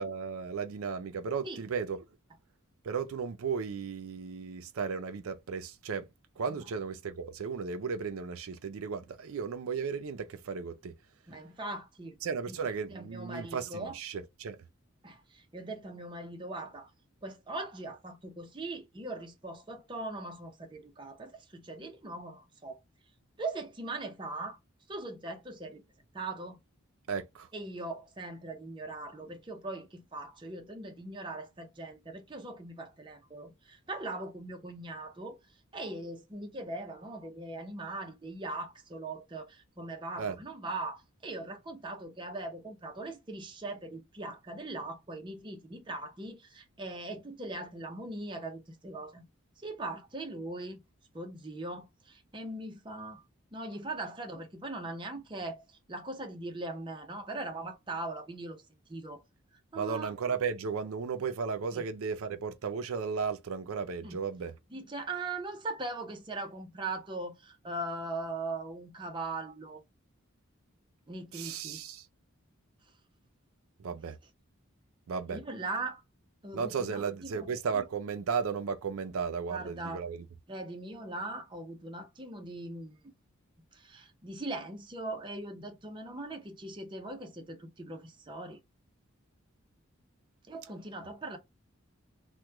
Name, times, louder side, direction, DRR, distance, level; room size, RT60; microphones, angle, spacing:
voice 1, 0.0-2.0 2.8-6.1 6.4-10.9 12.2-14.6 27.1-27.5 40.2-40.4 59.8-64.5 71.3-72.1 73.8-74.2 75.1-75.4 76.5-80.3, right 6 dB, 85° right, 0.4 m, -35 dB
voice 2, 11.3-12.2 12.9-14.0 15.0-16.9 17.2-22.8 23.4-24.6 24.9-25.8 26.1-26.6 27.5-35.4 35.7-49.3 49.6-50.8 51.1-53.2 53.5-58.6 58.9-59.2 59.7-60.1 61.7-61.8 64.0-64.2 64.7-69.8 71.1-71.8 75.3-76.0 76.4-77.5 79.5-80.0 80.5-82.9 83.7-88.6 90.5-91.4, right 2 dB, 20° right, 0.6 m, -40 dB
2.9 x 2.2 x 3.4 m
head